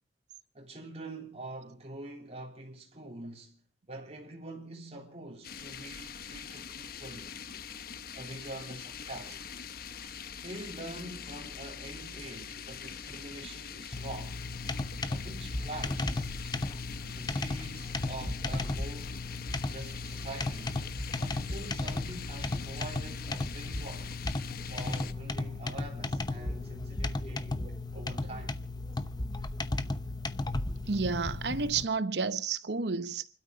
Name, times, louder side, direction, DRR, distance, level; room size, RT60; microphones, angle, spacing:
voice 1, 0.5-3.6 3.9-7.3 8.1-9.5 10.4-14.4 15.1-16.6 17.1-19.2 19.7-20.8 21.2-24.1 24.7-27.6 27.9-28.5, right 2 dB, 40° right, 3.5 m, -45 dB
sound 1, 5.4-25.1, left 6 dB, 60° left, 1.0 m, -43 dB
sound 2, 13.9-31.8, left 2 dB, 25° left, 0.8 m, -35 dB
voice 2, 30.9-33.4, right 4 dB, 70° right, 0.9 m, -31 dB
29.0 x 12.5 x 3.9 m
head